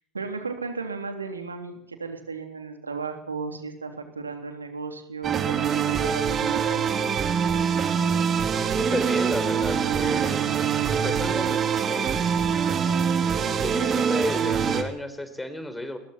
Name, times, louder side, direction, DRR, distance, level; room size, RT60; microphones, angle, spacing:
voice 1, 0.1-6.9, right 4 dB, 85° right, 5 dB, 3.5 m, -35 dB
sound 1, 5.2-14.8, right 7 dB, 35° right, 3.0 m, -24 dB
voice 2, 8.8-10.5 10.9-12.2 13.5-16.0, left 1 dB, 10° left, 9 dB, 4.3 m, -32 dB
29.0 x 22.0 x 4.6 m, 0.68 s
figure-of-eight pair, 75°, 0 cm